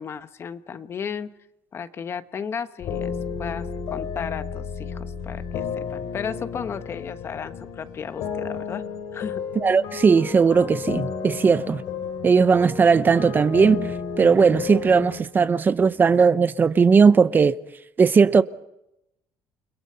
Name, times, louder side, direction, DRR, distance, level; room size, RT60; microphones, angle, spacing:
voice 1, 0.0-1.3 1.7-3.1 3.4-8.8 9.1-9.5, left 7 dB, 40° left, 1.2 m, -34 dB
sound 1, 2.8-15.2, left 6 dB, 75° left, 3.8 m, -32 dB
voice 2, 9.6-11.8 12.2-17.6 18.0-18.4, right 5 dB, 30° right, 0.8 m, -18 dB
29.5 x 21.5 x 5.7 m
cardioid pair, 120°, 7 cm